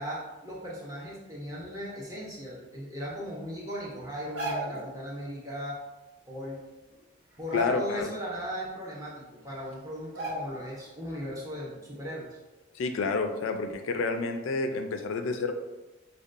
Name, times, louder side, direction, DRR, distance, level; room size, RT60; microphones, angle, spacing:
voice 1, 0.0-5.8 6.3-6.6 7.4-12.4, equal, 15° right, -4 dB, 0.7 m, -37 dB
sound 1, 4.2-4.9 6.4-6.5 6.8-7.0 7.4-8.2 8.6-8.7 9.5-9.6 10.1-10.8 11.1-11.3, equal, 80° right, 1.1 m, -36 dB
voice 2, 7.5-8.1 12.7-15.5, left 4 dB, 75° left, 5 dB, 0.3 m, -29 dB
5.0 x 2.2 x 2.5 m, 1.1 s
head